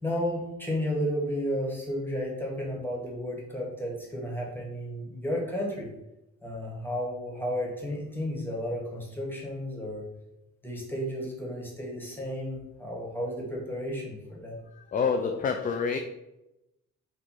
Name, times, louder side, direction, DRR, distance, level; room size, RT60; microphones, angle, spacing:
voice 1, 0.0-5.9 6.4-10.1 10.6-14.6, equal, 5° left, -2 dB, 1.6 m, -33 dB
voice 2, 14.8-16.0, left 5 dB, 30° left, 5 dB, 0.4 m, -27 dB
4.6 x 2.6 x 4.2 m, 0.92 s
cardioid pair, 90°, 30 cm